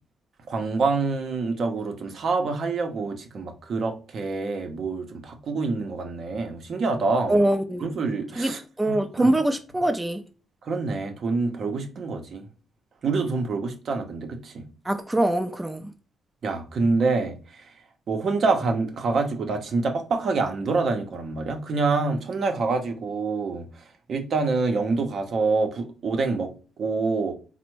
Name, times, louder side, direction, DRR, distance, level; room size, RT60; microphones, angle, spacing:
voice 1, 0.5-7.4 7.8-8.6 8.9-9.4 10.6-12.4 13.0-14.6 16.4-17.6 18.1-23.7 24.1-26.5 26.8-27.3, right 3 dB, 65° right, 0.6 m, -26 dB
voice 2, 7.3-7.9 8.4-10.2 14.9-15.9, right 1 dB, 15° right, 0.4 m, -23 dB
3.3 x 2.0 x 3.0 m
supercardioid pair, 65°, 0 cm